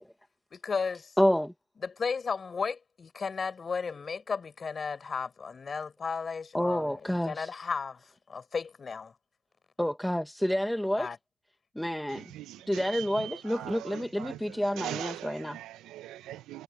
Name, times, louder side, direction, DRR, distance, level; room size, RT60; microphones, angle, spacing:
voice 1, 0.5-1.1 1.8-8.0 8.3-9.1 11.0-11.2, left 5 dB, 30° left, 4.8 m, -34 dB
voice 2, 1.2-1.5 6.5-7.5 9.8-11.1 11.7-12.2 12.7-15.6, equal, 5° left, 1.5 m, -29 dB
voice 3, 14.8-16.6, right 13 dB, 85° right, 0.7 m, -40 dB
cardioid pair, 120°, 0 cm